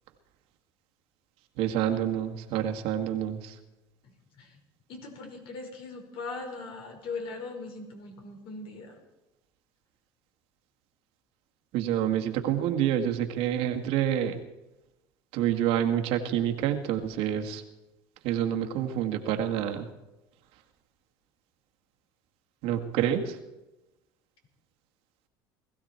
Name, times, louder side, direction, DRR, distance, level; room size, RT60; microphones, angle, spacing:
voice 1, 1.6-3.6 11.7-14.4 15.3-17.6 18.2-19.9 22.6-23.4, right 10 dB, 70° right, 4 dB, 2.0 m, -28 dB
voice 2, 4.0-4.6 4.9-9.0, left 3 dB, 60° left, 2 dB, 5.0 m, -40 dB
20.5 x 15.0 x 4.5 m, 0.99 s
supercardioid pair, 110°, 10 cm